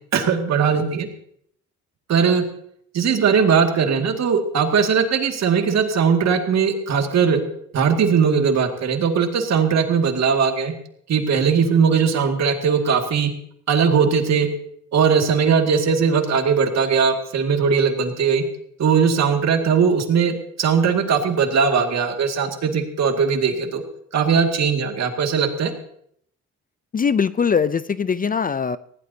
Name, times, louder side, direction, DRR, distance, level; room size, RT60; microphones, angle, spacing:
voice 1, 0.1-1.1 2.1-2.4 2.9-7.4 7.7-10.7 11.1-13.3 13.7-14.5 14.9-18.4 18.8-23.8 24.1-25.7, right 6 dB, 60° right, 4 dB, 2.2 m, -19 dB
voice 2, 26.9-28.8, left 6 dB, 30° left, 16 dB, 0.5 m, -21 dB
19.5 x 16.5 x 2.8 m, 0.67 s
cardioid pair, 90°, 30 cm